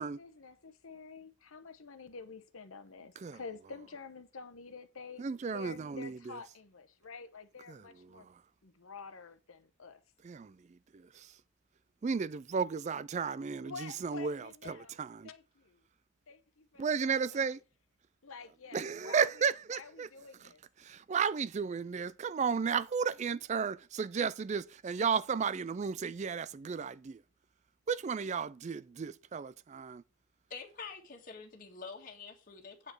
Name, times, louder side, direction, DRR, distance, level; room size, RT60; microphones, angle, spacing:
voice 1, 0.0-8.3 8.6-10.0 13.5-15.0 15.2-15.8 16.3-17.5 18.2-19.3 19.7-20.6, left 5 dB, 80° left, 1.0 m, -49 dB
voice 2, 5.2-6.4 7.7-7.8 8.1-8.3 10.2-10.6 10.9-11.3 12.0-15.3 16.8-17.6 18.7-20.1 20.8-27.2 27.9-30.0, right 6 dB, 35° right, 0.3 m, -34 dB
voice 3, 30.5-32.9, left 5 dB, 40° left, 1.7 m, -46 dB
8.5 x 5.0 x 6.1 m
head